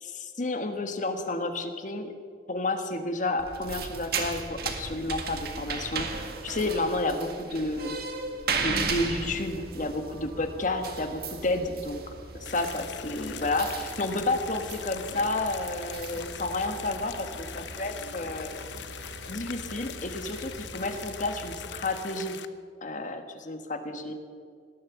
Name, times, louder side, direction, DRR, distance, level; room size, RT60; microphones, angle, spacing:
voice 1, 0.0-2.1 2.5-8.0 8.6-12.0 12.3-18.6 19.3-22.4 22.8-24.1, left 2 dB, 45° left, 6 dB, 1.5 m, -31 dB
sound 1, 3.4-21.5, right 4 dB, 60° right, 1.8 m, -37 dB
sound 2, 8.9-21.8, right 1 dB, 80° right, 2.2 m, -46 dB
sound 3, 12.5-22.5, left 8 dB, 90° left, 0.7 m, -41 dB
18.5 x 11.0 x 7.0 m, 2.2 s
head